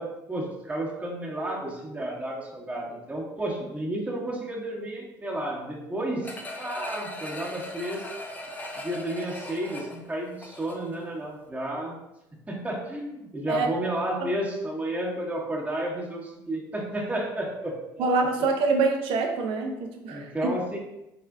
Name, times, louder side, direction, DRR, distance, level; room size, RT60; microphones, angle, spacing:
voice 1, 0.0-8.1 8.8-12.0 12.5-18.1 20.1-20.8, right 1 dB, 15° right, -3 dB, 1.1 m, -32 dB
sound 1, 6.2-11.0 11.4-11.5, left 1 dB, 15° left, 0.6 m, -39 dB
voice 2, 18.0-20.5, right 4 dB, 60° right, 3 dB, 0.7 m, -25 dB
4.2 x 3.3 x 2.4 m, 0.90 s
hypercardioid pair, 65°, 11 cm